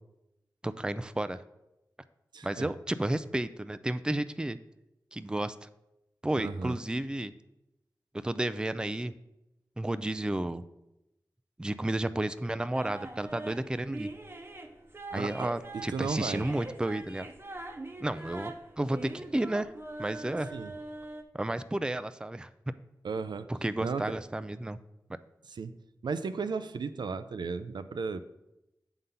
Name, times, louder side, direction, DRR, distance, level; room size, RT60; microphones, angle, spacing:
voice 1, 0.6-1.4 2.4-4.6 5.1-5.7 6.2-7.3 8.1-9.1 9.8-10.6 11.6-14.1 15.1-17.3 18.0-19.7 20.0-20.5 21.3-22.5 23.5-24.8, right 1 dB, 10° right, 13 dB, 0.3 m, -32 dB
voice 2, 2.3-2.7 6.3-6.8 15.1-15.5 15.7-16.5 20.5-20.7 23.0-23.5 23.8-24.1 25.5-25.8 26.0-28.2, right 5 dB, 80° right, 11 dB, 0.4 m, -35 dB
sound 1, 12.7-21.2, right 2 dB, 30° right, 0.8 m, -43 dB
8.0 x 3.8 x 5.6 m, 0.90 s
cardioid pair, 50°, 7 cm